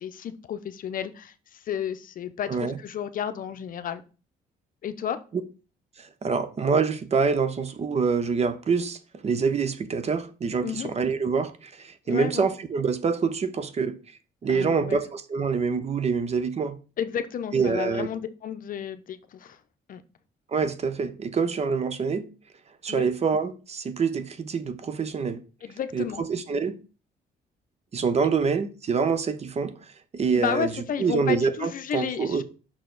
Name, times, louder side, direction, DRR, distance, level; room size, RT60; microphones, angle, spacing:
voice 1, 0.0-4.0 4.8-5.2 10.6-10.9 12.1-12.5 14.5-15.0 17.0-19.6 19.9-20.0 22.9-23.1 25.6-26.2 30.3-32.4, left 8 dB, 55° left, 0.6 m, -32 dB
voice 2, 6.2-9.0 9.2-14.0 14.4-16.8 17.5-18.1 20.5-22.2 22.8-25.4 25.9-26.8 27.9-29.7 30.1-30.7 31.0-32.4, right 5 dB, 40° right, 0.7 m, -26 dB
5.8 x 4.6 x 3.9 m
cardioid pair, 85°, 17 cm